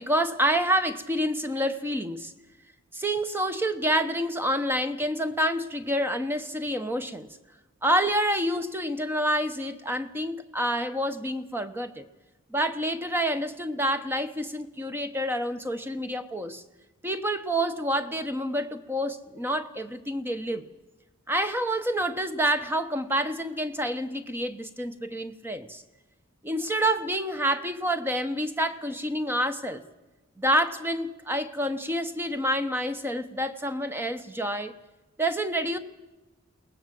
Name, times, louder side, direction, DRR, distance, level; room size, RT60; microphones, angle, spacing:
voice 1, 0.0-2.3 2.9-7.3 7.8-12.0 12.5-16.6 17.0-20.6 21.3-25.8 26.4-29.8 30.4-34.7 35.2-35.8, equal, 10° right, 10 dB, 1.0 m, -28 dB
22.0 x 18.5 x 7.6 m, 1.1 s
head